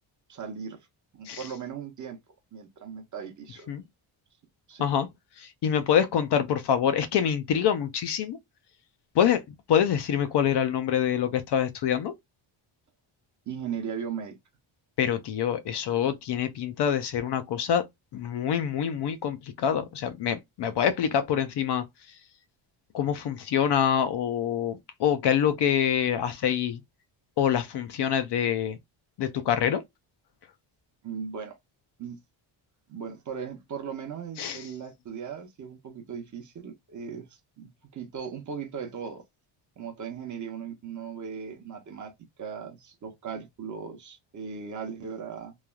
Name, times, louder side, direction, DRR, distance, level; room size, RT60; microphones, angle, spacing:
voice 1, 0.3-0.9 1.1-2.2 2.5-3.7 4.7-5.0 13.5-14.4 31.0-31.6 32.0-32.2 32.9-37.3 37.6-39.2 39.8-42.1 42.4-45.6, right 7 dB, 40° right, 0.7 m, -38 dB
voice 2, 5.6-8.4 9.2-9.4 9.7-12.1 15.0-17.8 18.1-21.8 22.9-26.8 27.4-28.8 29.2-29.8 34.4-34.6, left 9 dB, 60° left, 0.5 m, -25 dB
3.1 x 2.3 x 2.2 m
wide cardioid pair, 175°, 49 cm